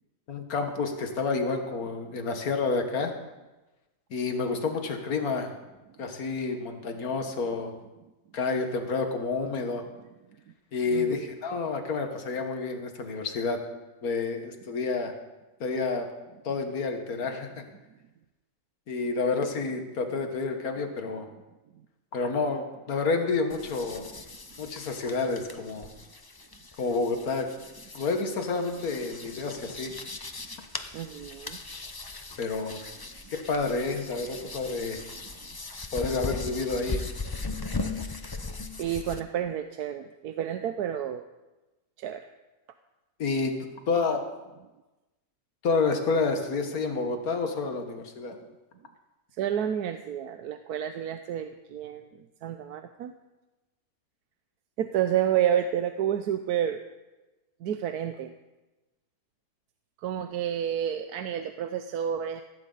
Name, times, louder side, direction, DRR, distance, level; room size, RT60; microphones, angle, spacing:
voice 1, 0.3-3.1 4.1-5.5 6.0-7.7 8.3-9.8 10.7-13.6 14.0-15.1 15.6-16.1 16.4-17.6 18.9-21.3 22.1-24.0 24.6-25.9 26.8-27.5 27.9-29.9 32.4-32.8 33.3-35.0 35.9-37.0 43.2-44.3 45.6-48.4, left 4 dB, 70° left, 5 dB, 1.9 m, -29 dB
voice 2, 10.9-11.3 30.4-30.5 30.9-31.6 37.4-37.6 38.8-41.2 42.0-42.3 48.3-48.4 49.3-53.1 54.8-56.8 57.6-58.3 60.0-62.4, right 10 dB, 85° right, 8 dB, 1.2 m, -30 dB
sound 1, 23.5-39.2, left 3 dB, 25° left, 0.5 m, -39 dB
16.5 x 16.0 x 4.0 m, 1.1 s
omnidirectional pair, 1.6 m